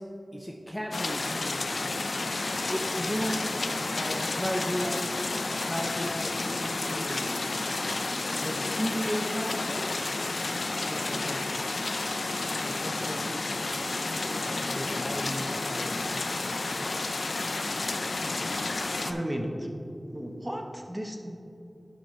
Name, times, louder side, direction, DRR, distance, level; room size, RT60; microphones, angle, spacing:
voice 1, 0.0-1.9 2.7-3.6 3.9-5.1 5.6-7.4 8.4-9.9 10.8-11.7 12.6-13.5 14.3-16.3, equal, 10° left, 1 dB, 0.5 m, -35 dB
sound 1, 0.9-19.1, left 2 dB, 75° left, 0.4 m, -31 dB
voice 2, 19.0-19.7 20.1-21.3, equal, 15° right, 2 dB, 0.9 m, -34 dB
11.5 x 5.7 x 3.2 m, 2.7 s
wide cardioid pair, 75°, 0 cm